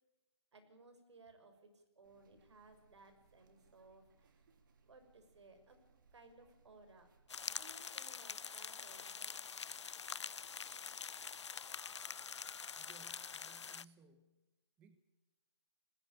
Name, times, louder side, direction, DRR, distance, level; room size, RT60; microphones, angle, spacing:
voice 1, 0.5-4.5 4.9-5.8 6.1-7.1 7.6-9.4, right 3 dB, 75° right, 8 dB, 6.2 m, -61 dB
sound 1, 2.0-7.7, right 5 dB, 45° right, 2.6 m, -71 dB
sound 2, 7.3-13.8, left 6 dB, 80° left, 0.7 m, -45 dB
voice 2, 12.7-14.4 14.8-15.0, right 4 dB, 10° right, 10 dB, 1.0 m, -64 dB
20.0 x 16.5 x 8.6 m, 1.0 s
hypercardioid pair, 165°, 15 cm